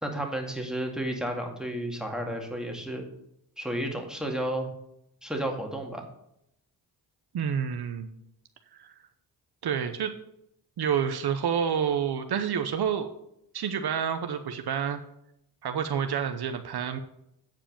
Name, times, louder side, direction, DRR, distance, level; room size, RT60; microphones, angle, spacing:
voice 1, 0.0-3.0 3.6-4.7 5.2-6.0, right 1 dB, ahead, 2 dB, 2.2 m, -32 dB
voice 2, 7.3-8.1 8.7-9.0 9.6-10.1 10.8-13.1 13.5-15.0 15.6-17.0, right 8 dB, 65° right, 8 dB, 0.8 m, -28 dB
9.0 x 4.8 x 7.5 m, 0.78 s
cardioid pair, 55°, 41 cm